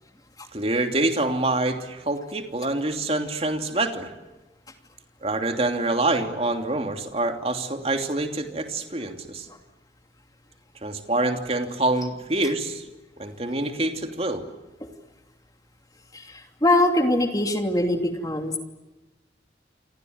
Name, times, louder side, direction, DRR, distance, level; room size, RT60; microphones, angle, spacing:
voice 1, 0.5-4.1 5.2-9.5 10.8-12.9 13.2-14.4, right 2 dB, 35° right, 5 dB, 2.9 m, -26 dB
voice 2, 16.1-18.6, left 1 dB, 20° left, 5 dB, 2.8 m, -23 dB
29.0 x 24.5 x 8.1 m, 1.1 s
head